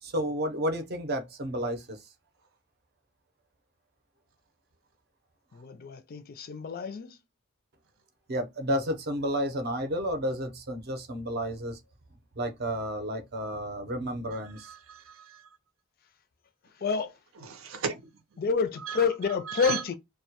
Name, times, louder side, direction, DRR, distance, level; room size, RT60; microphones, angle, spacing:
voice 1, 0.0-2.0 8.3-11.8 12.4-14.7, equal, 50° right, 0.6 m, -31 dB
voice 2, 5.5-7.2 16.8-17.1 18.4-19.9, left 5 dB, 45° left, 0.4 m, -29 dB
voice 3, 14.3-15.6 17.4-18.4 18.8-19.0 19.4-19.8, right 6 dB, 90° right, 0.6 m, -37 dB
2.2 x 2.1 x 2.8 m
head